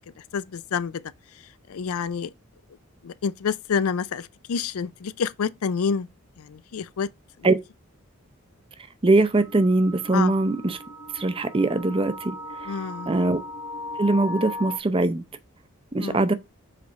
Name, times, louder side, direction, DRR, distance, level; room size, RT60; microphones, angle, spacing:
voice 1, 0.3-1.0 1.7-2.3 3.0-6.1 6.4-7.1 7.4-7.5 10.1-10.3 12.6-13.2 16.0-16.2, left 6 dB, 90° left, 0.4 m, -28 dB
voice 2, 9.0-10.8 11.1-12.4 13.1-13.4 14.0-15.2 15.9-16.3, right 2 dB, 25° right, 0.5 m, -21 dB
sound 1, 9.3-14.8, left 1 dB, 60° left, 1.0 m, -37 dB
5.0 x 4.1 x 4.6 m
head